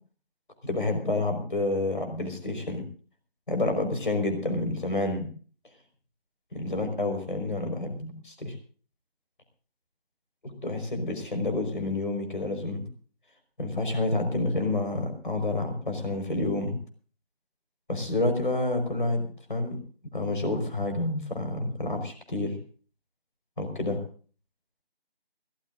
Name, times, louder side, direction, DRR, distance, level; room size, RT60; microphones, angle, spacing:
voice 1, 0.6-2.8 3.5-5.3 6.5-8.5 10.6-12.9 13.6-16.8 17.9-19.2 19.5-19.8 20.1-22.6 23.6-24.0, left 2 dB, 55° left, 6 dB, 5.1 m, -29 dB
22.5 x 18.5 x 2.6 m, 0.41 s
figure-of-eight pair, 170°, 31 cm